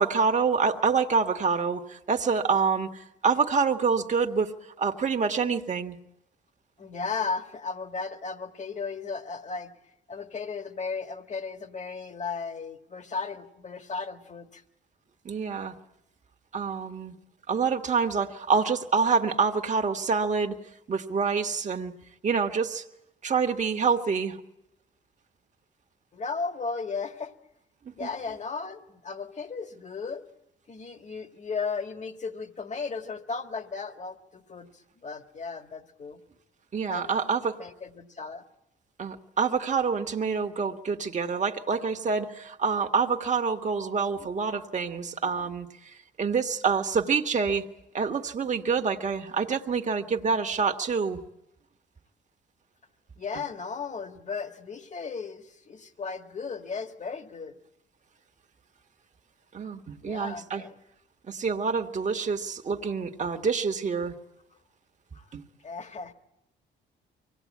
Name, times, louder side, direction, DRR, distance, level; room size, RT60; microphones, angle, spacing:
voice 1, 0.0-4.5 4.8-6.0 15.2-15.7 16.5-17.1 17.5-20.6 20.9-21.9 22.2-22.8 23.2-24.4 27.8-28.1 36.7-37.6 39.0-47.6 47.9-51.2 59.5-60.6 61.3-64.1 65.3-65.4, right 5 dB, 35° right, 4 dB, 1.5 m, -27 dB
voice 2, 6.8-9.7 10.1-14.6 26.1-27.3 27.9-30.2 30.7-36.2 36.9-37.1 37.6-38.4 53.2-57.6 60.0-60.8 65.1-65.3 65.6-66.1, left 4 dB, 35° left, 7 dB, 1.8 m, -35 dB
24.0 x 18.0 x 8.5 m, 0.86 s
cardioid pair, 90°, 20 cm